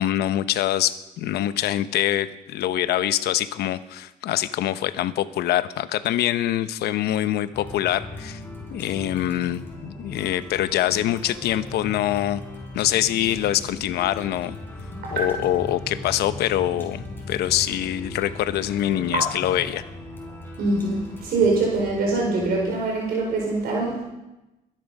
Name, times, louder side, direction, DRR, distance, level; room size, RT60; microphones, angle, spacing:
voice 1, 0.0-8.4 8.7-12.4 12.7-14.5 15.1-19.8, left 12 dB, 75° left, 13 dB, 0.9 m, -24 dB
sound 1, 7.5-22.8, left 2 dB, 15° left, 4.9 m, -38 dB
voice 2, 15.0-15.5 19.1-19.2 20.6-24.0, right 3 dB, 65° right, -1 dB, 4.6 m, -24 dB
21.5 x 11.0 x 5.4 m, 0.99 s
cardioid pair, 110°, 17 cm